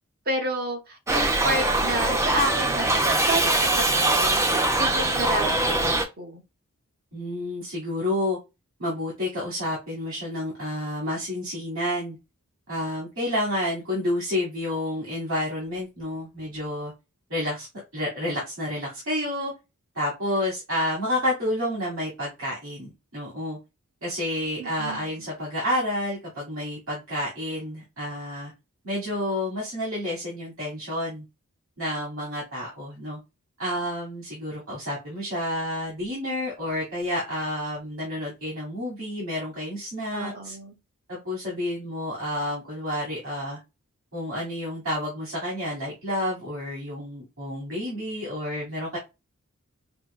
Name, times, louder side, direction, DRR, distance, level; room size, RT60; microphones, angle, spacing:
voice 1, 0.3-4.4 4.8-6.4 24.6-25.1 40.1-40.8, right 1 dB, 45° right, 1.1 m, -30 dB
Shout / Livestock farm animals working animals, 1.1-6.1, right 2 dB, 15° right, 0.5 m, -22 dB
voice 2, 7.1-8.4 8.8-12.2 12.7-16.9 17.3-17.7 17.9-19.5 19.9-23.6 24.0-28.5 28.8-31.2 31.8-33.2 33.6-40.5 41.1-43.6 44.1-49.0, left 1 dB, 65° right, 2.1 m, -30 dB
5.9 x 2.2 x 2.2 m
head